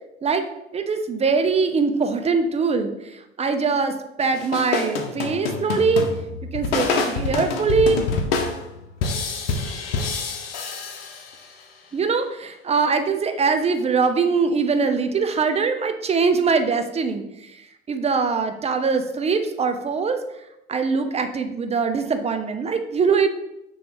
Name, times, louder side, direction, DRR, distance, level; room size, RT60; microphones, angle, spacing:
voice 1, 0.7-2.9 3.4-6.1 6.5-8.0 11.9-17.2 17.9-20.2 20.7-23.3, right 5 dB, 20° right, 7 dB, 0.6 m, -22 dB
sound 1, 4.2-11.6, left 4 dB, 65° left, 0.9 m, -27 dB
5.8 x 3.2 x 5.3 m, 0.87 s
figure-of-eight pair, 65°, 33 cm